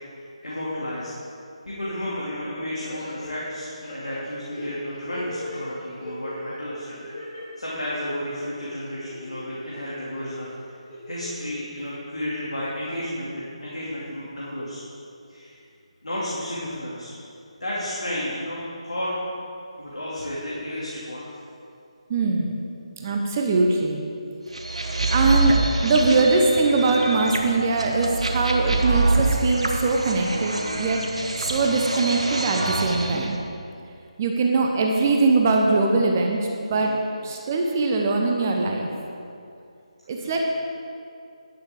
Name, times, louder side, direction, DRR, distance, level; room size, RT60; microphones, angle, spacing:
voice 1, 0.1-1.1 1.7-6.9 7.6-10.5 11.1-14.8 15.3-15.6 16.0-17.1 17.6-19.1 19.8-21.3 36.7-37.0 40.2-40.4, left 1 dB, 70° left, -7 dB, 2.7 m, -32 dB
sound 1, 2.8-3.5 3.8-5.6 6.0-6.4 6.8-7.4 7.8-8.7 9.1-9.7 10.2-10.3 10.9-11.5 11.9-12.0, left 1 dB, 15° left, 2.7 m, -38 dB
voice 2, 22.1-22.6 23.0-24.0 25.1-31.0 31.4-33.4 34.2-36.4 36.7-36.9 37.2-38.9 40.1-40.4, right 3 dB, 25° right, 1 dB, 0.8 m, -22 dB
sound 2, 24.5-33.3, right 2 dB, 65° right, 1.3 m, -25 dB
11.5 x 10.5 x 3.8 m, 2.5 s
figure-of-eight pair, 150°, 4 cm